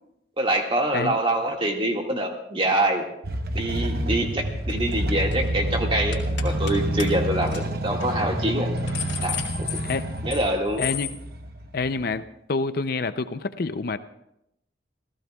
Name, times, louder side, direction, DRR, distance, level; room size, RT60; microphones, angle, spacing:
voice 1, 0.4-3.1 3.5-8.7 9.2-9.7 10.2-10.8, right 1 dB, 30° right, 1 dB, 1.9 m, -25 dB
sound 1, 3.2-12.2, right 1 dB, 55° right, 1.0 m, -28 dB
sound 2, 4.7-4.9 5.2-5.5 6.1-6.7 7.0-7.1 7.5-7.6 8.0-8.1 8.6-10.5 10.8-11.1, left 9 dB, 75° left, 2.3 m, -33 dB
voice 2, 10.8-11.1 11.7-14.0, left 4 dB, 55° left, 12 dB, 0.5 m, -27 dB
27.5 x 15.0 x 2.3 m, 0.82 s
head